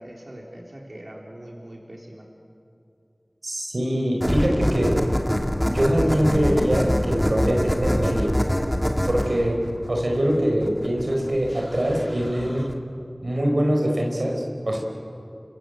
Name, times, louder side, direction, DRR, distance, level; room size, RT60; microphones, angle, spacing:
voice 1, 0.0-2.3, right 1 dB, 50° right, -2 dB, 4.1 m, -41 dB
voice 2, 3.4-5.0 5.6-8.4 9.0-12.7 13.2-14.8, equal, 75° right, 0 dB, 4.9 m, -23 dB
sound 1, 4.2-12.7, equal, 10° left, 2.7 m, -25 dB
29.5 x 25.5 x 8.0 m, 2.6 s
wide cardioid pair, 45°, 0 cm